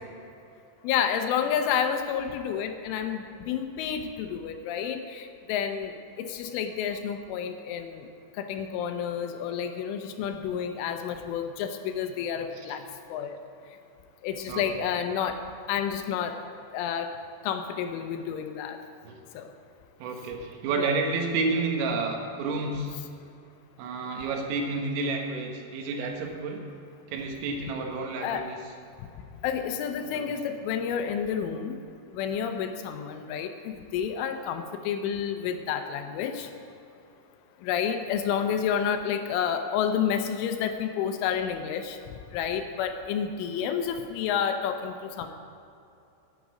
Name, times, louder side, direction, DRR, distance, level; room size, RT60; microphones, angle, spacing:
voice 1, 0.8-8.1 8.4-12.8 13.1-13.4 14.2-15.4 15.7-16.4 16.7-17.1 17.4-18.8 19.3-19.5 20.8-20.9 28.2-28.4 29.4-31.8 32.1-36.5 37.6-42.0 42.3-45.3, left 8 dB, 80° left, 7 dB, 3.2 m, -30 dB
voice 2, 20.0-23.0 23.8-26.6 27.1-28.6 30.0-30.3, right 3 dB, 85° right, 2 dB, 4.1 m, -30 dB
11.0 x 9.2 x 8.4 m, 2.6 s
omnidirectional pair, 5.8 m